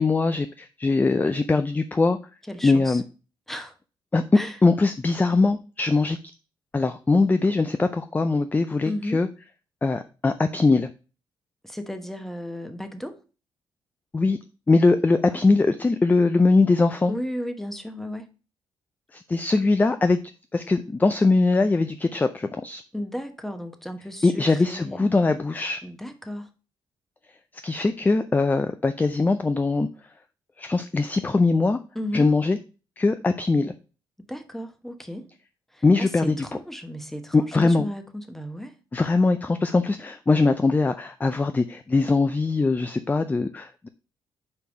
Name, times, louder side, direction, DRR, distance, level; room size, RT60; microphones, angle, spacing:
voice 1, 0.0-2.2 2.6-3.0 4.1-4.2 4.6-6.2 6.7-9.3 9.8-10.9 14.1-14.4 14.7-17.1 19.1-20.2 20.5-22.8 24.2-25.8 27.6-29.9 30.6-31.8 32.1-32.6 33.0-33.7 35.8-36.4 37.3-37.9 38.9-43.9, left 3 dB, 20° left, 0.4 m, -21 dB
voice 2, 2.5-3.0 3.5-3.7 4.3-4.6 8.9-9.2 11.6-13.2 15.2-15.6 17.1-18.3 22.9-25.2 25.8-26.5 31.9-32.3 34.2-35.3 35.7-38.7, left 1 dB, 5° left, 1.1 m, -34 dB
5.3 x 4.7 x 5.1 m
cardioid pair, 90°, 9 cm